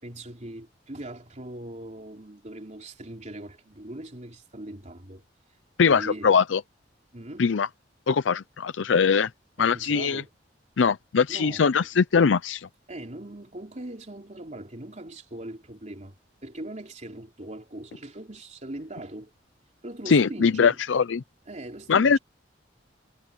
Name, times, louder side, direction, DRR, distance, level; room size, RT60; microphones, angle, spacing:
voice 1, 0.0-5.3 5.8-6.3 7.1-7.5 9.6-10.3 11.3-11.6 12.9-16.2 16.4-19.3 19.8-20.8 21.5-22.2, right 1 dB, 40° right, 3.6 m, -40 dB
voice 2, 5.8-6.6 7.4-7.7 8.1-9.3 9.6-10.2 10.8-12.7 20.1-21.2 21.9-22.2, left 5 dB, 85° left, 0.5 m, -21 dB
head